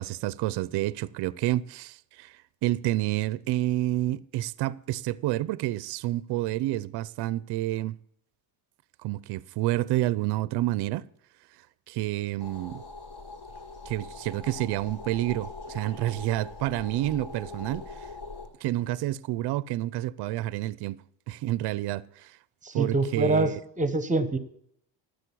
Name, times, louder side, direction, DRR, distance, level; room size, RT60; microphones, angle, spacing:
voice 1, 0.0-2.3 2.6-8.0 9.0-11.0 11.9-12.8 13.9-17.8 18.6-21.0 21.3-22.3 22.7-23.5, right 15 dB, 60° right, 0.6 m, -29 dB
sound 1, 12.4-18.5, left 3 dB, 70° left, 6.2 m, -42 dB
voice 2, 22.6-24.4, right 2 dB, 15° right, 1.0 m, -25 dB
12.5 x 6.6 x 8.4 m
cardioid pair, 130°, 46 cm